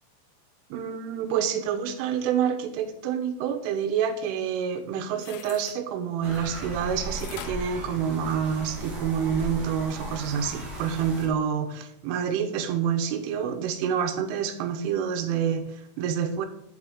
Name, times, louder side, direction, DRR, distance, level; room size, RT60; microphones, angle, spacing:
voice 1, 0.7-16.5, right 8 dB, 90° right, 8 dB, 3.4 m, -28 dB
sound 1, 4.8-5.8 7.1-8.7 9.2-9.3, left 12 dB, 80° left, 2.6 m, -44 dB
sound 2, 6.2-11.3, right 1 dB, 40° right, 1.4 m, -37 dB
11.5 x 4.9 x 5.0 m, 0.77 s
omnidirectional pair, 5.6 m